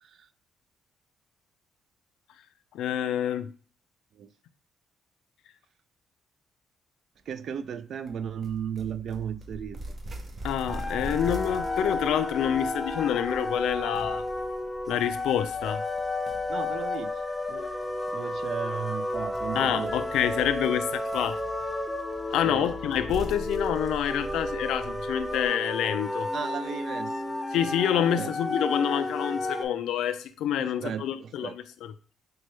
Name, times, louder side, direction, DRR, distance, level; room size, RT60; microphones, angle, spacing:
voice 1, 2.7-3.5 10.4-14.2 14.9-15.8 19.6-21.4 22.3-26.3 27.5-31.9, left 10 dB, 85° left, 0.3 m, -27 dB
voice 2, 7.3-10.0 16.5-17.1 17.5-17.7 18.1-20.0 22.4-22.7 26.3-27.2 27.9-28.3 30.6-31.6, right 8 dB, 60° right, 0.3 m, -35 dB
sound 1, 8.1-25.5, right 1 dB, 40° right, 0.8 m, -43 dB
sound 2, 10.7-29.7, left 2 dB, 10° left, 0.5 m, -32 dB
5.2 x 2.3 x 3.1 m
cardioid pair, 90°, 0 cm